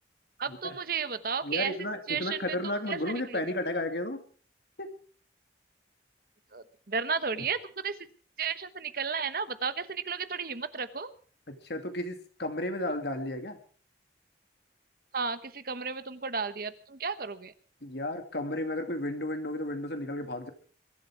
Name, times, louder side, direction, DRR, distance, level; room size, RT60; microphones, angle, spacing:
voice 1, 0.4-1.7 2.1-2.4 2.9-3.4 6.5-7.6 7.8-7.9 8.4-11.1 15.1-17.5, right 5 dB, 55° right, 13 dB, 1.1 m, -33 dB
voice 2, 1.4-4.2 4.8-4.9 11.5-13.6 17.8-20.5, left 1 dB, 65° left, 6 dB, 2.4 m, -33 dB
22.5 x 12.5 x 4.7 m, 0.42 s
head